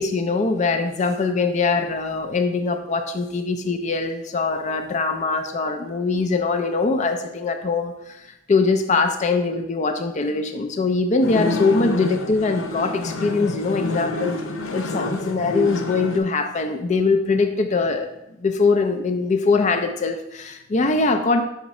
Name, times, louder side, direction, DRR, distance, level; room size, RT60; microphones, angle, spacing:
voice 1, 0.0-14.4 14.7-18.1 18.4-21.4, left 4 dB, 40° left, 6 dB, 0.4 m, -22 dB
sound 1, 11.2-16.2, left 2 dB, 90° left, 0.7 m, -28 dB
5.9 x 5.8 x 4.1 m, 0.88 s
head